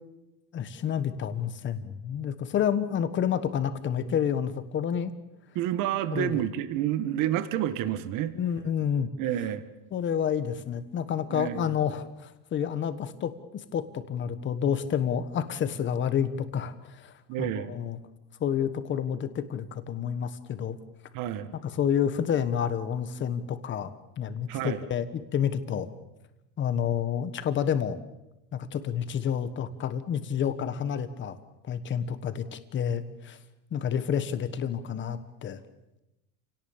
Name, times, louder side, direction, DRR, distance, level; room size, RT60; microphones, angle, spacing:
voice 1, 0.5-5.1 6.1-6.4 8.3-9.1 9.9-18.0 18.4-20.8 21.6-23.9 24.2-25.9 26.6-28.0 28.5-31.4 31.7-33.4 33.7-35.6, left 8 dB, 25° left, 12 dB, 1.4 m, -29 dB
voice 2, 5.5-8.3 9.2-9.6 11.3-11.7 17.3-17.8 21.1-21.5 24.5-24.8, right 11 dB, 50° right, 11 dB, 1.5 m, -29 dB
29.5 x 18.0 x 7.3 m, 0.97 s
cardioid pair, 165°, 42 cm